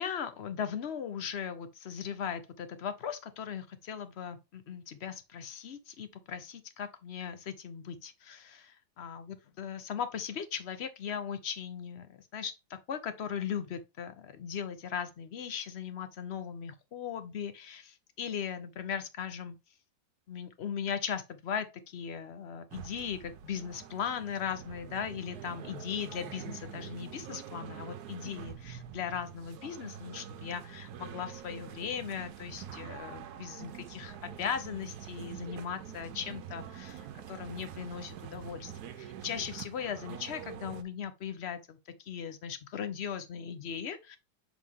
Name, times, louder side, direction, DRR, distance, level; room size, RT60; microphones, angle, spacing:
voice 1, 0.0-19.5 20.3-44.2, left 7 dB, 55° left, 0.7 m, -38 dB
sound 1, 22.7-40.8, right 9 dB, 70° right, 1.1 m, -45 dB
7.0 x 3.9 x 3.6 m
omnidirectional pair, 1.9 m